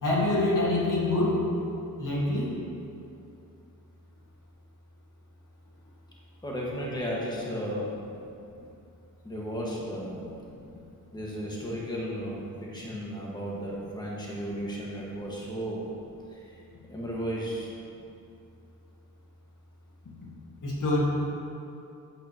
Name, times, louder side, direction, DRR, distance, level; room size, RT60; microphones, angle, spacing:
voice 1, 0.0-1.4 2.0-2.5 20.6-21.0, left 2 dB, 55° left, -5 dB, 2.0 m, -25 dB
voice 2, 6.4-8.2 9.2-10.2 11.1-15.8 16.3-16.4 16.9-17.7, equal, 10° left, -5 dB, 1.8 m, -34 dB
9.1 x 8.0 x 3.1 m, 2.6 s
cardioid pair, 70°, 36 cm